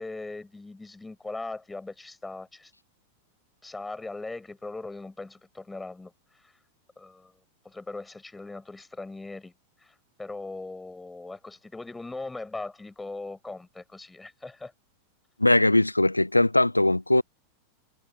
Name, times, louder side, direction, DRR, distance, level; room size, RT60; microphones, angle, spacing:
voice 1, 0.0-2.7 3.6-6.5 7.0-7.3 7.6-9.5 9.8-14.7, left 3 dB, 10° left, 6.0 m, -39 dB
voice 2, 15.4-17.2, left 1 dB, 85° left, 0.3 m, -20 dB
figure-of-eight pair, 90°, 0 cm